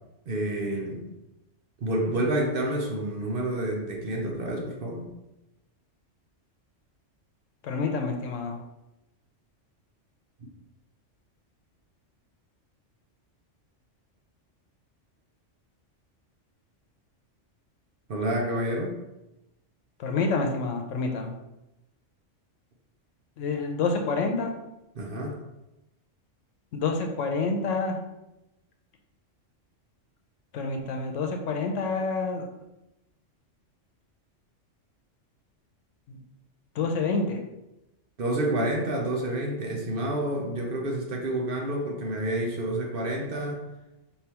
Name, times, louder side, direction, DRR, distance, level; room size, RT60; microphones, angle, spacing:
voice 1, 0.3-1.0 1.8-5.1 10.4-10.5 18.1-19.0 25.0-25.4 38.2-43.7, right 1 dB, 55° right, 0 dB, 0.8 m, -29 dB
voice 2, 7.6-8.6 20.0-21.3 23.4-24.5 26.7-28.0 30.5-32.4 36.1-36.2 36.7-37.4, left 4 dB, 85° left, 3 dB, 1.0 m, -28 dB
4.5 x 3.4 x 2.9 m, 0.93 s
omnidirectional pair, 1.3 m